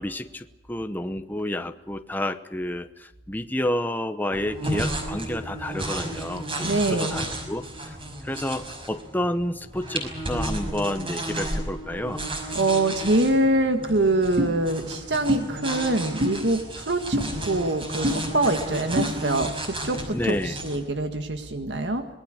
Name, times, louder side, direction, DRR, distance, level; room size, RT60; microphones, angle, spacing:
voice 1, 0.0-8.0 8.2-12.2 20.1-20.6, left 1 dB, 10° left, 8 dB, 0.9 m, -30 dB
sound 1, 4.3-20.8, right 1 dB, 30° right, 5.6 m, -33 dB
voice 2, 6.6-7.2 12.5-22.1, right 2 dB, 75° right, 6 dB, 1.8 m, -24 dB
sound 2, 14.4-14.5 15.3-15.4 16.2-16.4 17.1-17.3 18.0-18.2 19.0-19.1, equal, 50° right, 2.6 m, -23 dB
26.0 x 20.5 x 6.6 m, 1.1 s
head